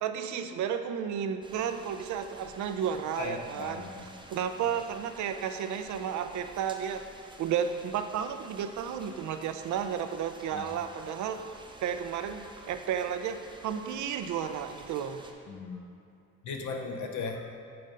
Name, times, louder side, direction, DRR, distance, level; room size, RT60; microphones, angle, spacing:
voice 1, 0.0-3.9 4.3-7.1 7.4-11.4 11.8-15.2, right 8 dB, 70° right, 8 dB, 0.5 m, -32 dB
sound 1, 1.4-15.3, right 2 dB, 15° right, 0.7 m, -51 dB
voice 2, 3.2-4.1 10.5-10.7 15.5-15.8 16.4-17.5, left 4 dB, 70° left, 4 dB, 0.8 m, -37 dB
7.7 x 3.7 x 5.2 m, 2.7 s
cardioid pair, 90°, 30 cm